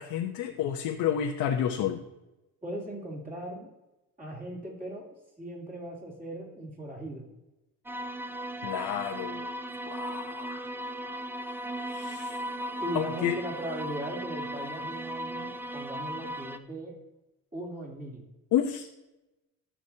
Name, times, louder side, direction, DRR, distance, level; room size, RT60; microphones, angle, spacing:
voice 1, 0.0-2.0 8.6-9.5 9.8-10.7 11.9-12.4 12.9-13.4 18.5-18.9, left 9 dB, 75° left, 2 dB, 0.9 m, -30 dB
voice 2, 2.6-3.7 4.2-5.1 5.4-7.2 12.8-16.9 17.5-18.2, right 1 dB, 25° right, -3 dB, 3.4 m, -38 dB
sound 1, 7.9-16.6, right 1 dB, 5° right, 0.4 m, -37 dB
14.0 x 6.1 x 2.9 m, 0.98 s
cardioid pair, 120°, 34 cm